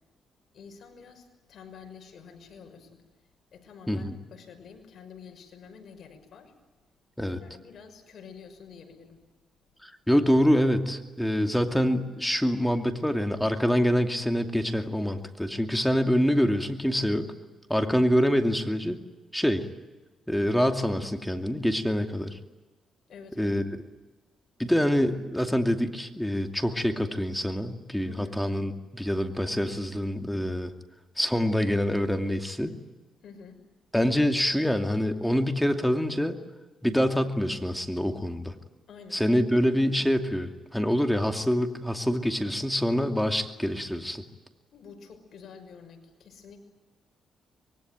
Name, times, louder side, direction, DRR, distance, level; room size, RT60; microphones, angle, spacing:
voice 1, 0.5-3.0 3.5-4.0 4.3-6.5 7.3-9.2 16.0-16.6 17.7-18.1 23.1-23.5 28.1-28.4 33.2-33.6 38.9-39.2 44.7-46.6, left 6 dB, 60° left, 6 dB, 6.0 m, -48 dB
voice 2, 3.9-4.2 7.2-7.4 9.8-17.3 17.7-19.0 19.3-19.7 20.3-22.4 23.4-23.6 24.6-30.7 31.2-32.8 33.9-36.4 36.8-38.5 39.1-44.2, equal, 5° left, 5 dB, 2.6 m, -25 dB
25.0 x 23.0 x 9.4 m, 1.2 s
cardioid pair, 90°, 0 cm